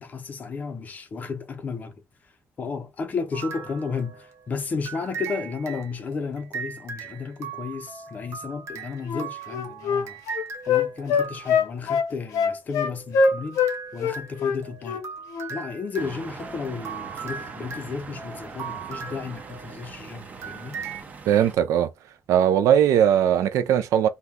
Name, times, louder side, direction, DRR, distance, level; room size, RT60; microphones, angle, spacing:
voice 1, 0.0-2.0 2.2-2.3 2.6-10.2 10.7-13.6 13.9-15.0 15.5-20.8, left 5 dB, 30° left, 0.5 m, -33 dB
sound 1, 3.3-4.4 4.8-11.8 12.8-20.0 20.4-21.0, right 6 dB, 60° right, 0.8 m, -39 dB
Wind instrument woodwind instrument, 9.0-13.7 14.0-15.1 15.3-15.5, left 5 dB, 90° left, 0.7 m, -23 dB
sound 2, 16.0-21.5, right 4 dB, 30° right, 0.5 m, -41 dB
voice 2, 21.3-21.9 22.3-24.1, right 10 dB, 80° right, 0.3 m, -19 dB
2.8 x 2.2 x 3.5 m
cardioid pair, 165°, 5 cm